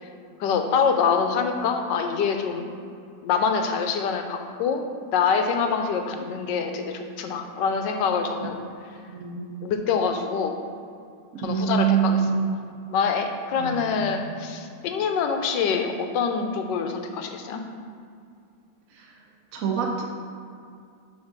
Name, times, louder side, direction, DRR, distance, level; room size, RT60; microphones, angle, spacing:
voice 1, 0.4-2.8 3.2-4.8 5.1-8.6 9.6-10.6 11.4-12.2 12.9-17.6, left 6 dB, 80° left, 5 dB, 1.3 m, -25 dB
voice 2, 9.1-9.5 11.4-12.4 13.6-14.2 18.9-19.1 19.5-20.0, right 7 dB, 60° right, -1 dB, 1.0 m, -25 dB
6.4 x 3.5 x 6.0 m, 2.4 s
omnidirectional pair, 1.9 m